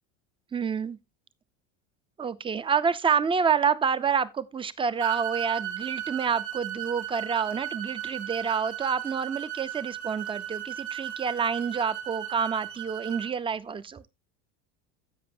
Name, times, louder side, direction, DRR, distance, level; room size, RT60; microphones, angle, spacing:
voice 1, 0.5-1.0 2.2-14.0, right 6 dB, 15° right, 0.5 m, -28 dB
sound 1, 5.0-13.3, right 11 dB, 65° right, 3.0 m, -36 dB
15.5 x 5.2 x 2.6 m
supercardioid pair, 105°, 37 cm